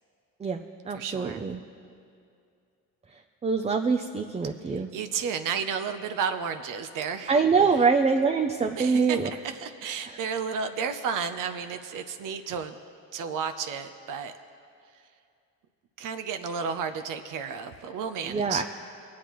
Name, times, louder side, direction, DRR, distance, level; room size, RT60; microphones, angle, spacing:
voice 1, 0.4-1.6 3.4-4.9 7.3-9.3 18.2-18.6, right 5 dB, 20° right, 4 dB, 0.4 m, -24 dB
voice 2, 0.9-1.5 4.6-7.3 7.7-7.8 8.8-12.8 13.1-14.3 14.9-15.1 16.0-18.6, right 6 dB, 65° right, 8 dB, 0.6 m, -32 dB
20.5 x 8.4 x 3.1 m, 2.4 s
cardioid pair, 95°, 34 cm